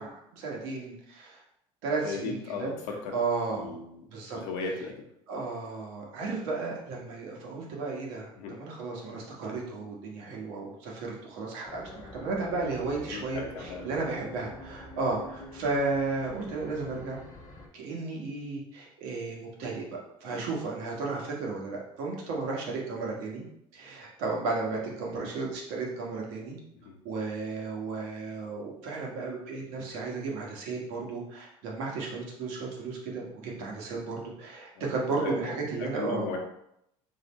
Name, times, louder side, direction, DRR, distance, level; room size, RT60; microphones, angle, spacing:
voice 1, 0.0-1.4 1.8-2.7 3.1-3.7 4.1-4.4 5.3-11.8 12.1-17.2 17.7-23.4 23.7-26.6 27.0-36.3, right 3 dB, 75° right, -2 dB, 1.3 m, -34 dB
voice 2, 2.0-3.1 3.5-4.0 4.3-4.9 8.3-8.6 13.1-13.8 20.3-20.4 26.7-26.9 34.7-34.8 35.2-35.5 35.9-36.4, left 4 dB, 70° left, 1 dB, 1.1 m, -36 dB
sound 1, 11.6-17.7, left 1 dB, 30° left, 1.0 m, -46 dB
4.0 x 2.8 x 4.1 m, 0.78 s
cardioid pair, 135°, 12 cm